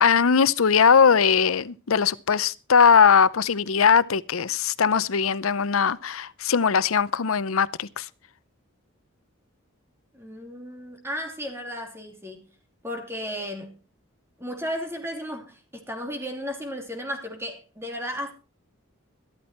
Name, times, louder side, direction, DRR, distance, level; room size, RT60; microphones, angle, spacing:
voice 1, 0.0-8.1, left 6 dB, 85° left, 0.7 m, -20 dB
voice 2, 10.1-12.5 12.8-13.7 14.4-18.3, equal, 10° right, 3.0 m, -34 dB
14.0 x 13.0 x 4.4 m
head